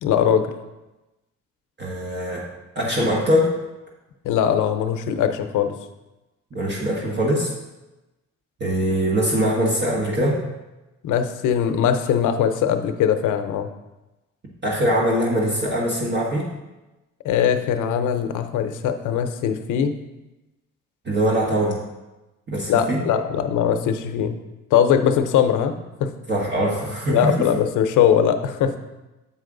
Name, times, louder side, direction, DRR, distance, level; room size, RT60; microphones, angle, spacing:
voice 1, 0.0-0.5 4.2-5.7 11.0-13.7 17.2-19.9 22.7-24.4 24.7-25.7 26.0-26.1 27.1-28.7, left 8 dB, 80° left, 8 dB, 0.7 m, -21 dB
voice 2, 1.8-2.5 2.7-3.6 6.5-7.5 8.6-10.4 14.6-16.5 21.0-21.8 22.5-23.0 26.3-27.3, equal, 35° right, -3 dB, 1.5 m, -22 dB
7.4 x 5.4 x 3.8 m, 1.0 s
cardioid pair, 90°, 30 cm